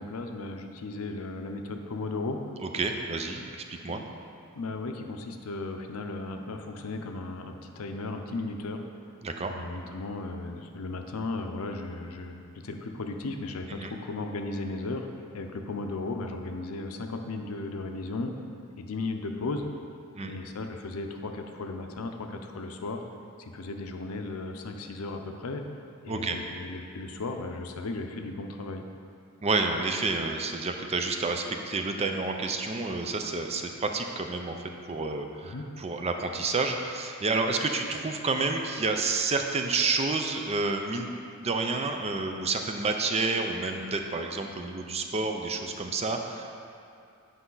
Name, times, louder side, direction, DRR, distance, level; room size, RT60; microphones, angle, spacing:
voice 1, 0.0-2.4 3.9-4.0 4.5-8.8 9.4-12.3 12.6-15.1 15.3-18.3 18.8-19.7 20.2-23.0 23.4-25.6 26.0-28.8 35.4-35.7, left 3 dB, 80° left, 5 dB, 0.6 m, -35 dB
voice 2, 2.6-3.4 3.7-4.0 9.2-9.5 13.8-13.9 20.2-20.3 26.1-26.4 29.4-34.5 34.9-41.1 41.4-46.5, right 3 dB, 30° right, 4 dB, 0.5 m, -29 dB
8.3 x 5.4 x 3.9 m, 2.5 s
head